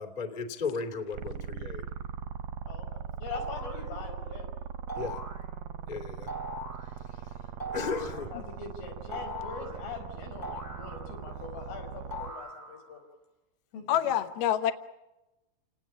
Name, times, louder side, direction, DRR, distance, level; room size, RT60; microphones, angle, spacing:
voice 1, 0.0-1.8 4.9-5.2 5.9-6.3 7.1-7.3 7.7-8.3 9.1-9.2, left 4 dB, 15° left, 7 dB, 1.4 m, -35 dB
sound 1, 1.1-12.3, right 7 dB, 75° right, 2.3 m, -40 dB
voice 2, 2.7-4.5 8.1-13.0 13.7-13.9, left 6 dB, 90° left, 3 dB, 7.8 m, -42 dB
sound 2, 3.3-3.9 4.9-5.4 6.3-6.9 7.6-8.2 9.1-9.8 10.4-11.4 12.1-12.9, equal, 40° left, 0.9 m, -40 dB
voice 3, 13.9-14.7, left 11 dB, 70° left, 9 dB, 2.6 m, -26 dB
29.5 x 19.0 x 8.8 m, 1.0 s
omnidirectional pair, 5.5 m